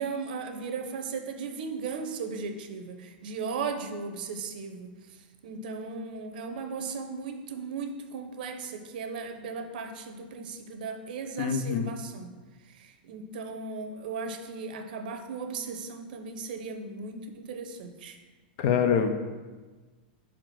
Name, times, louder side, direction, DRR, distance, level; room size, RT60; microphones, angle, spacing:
voice 1, 0.0-5.2 5.4-12.3 12.7-18.2, right 4 dB, 60° right, 6 dB, 0.8 m, -36 dB
voice 2, 11.4-11.9 18.6-19.2, left 7 dB, 45° left, 8 dB, 0.6 m, -25 dB
5.0 x 4.3 x 5.9 m, 1.3 s
supercardioid pair, 160°, 5 cm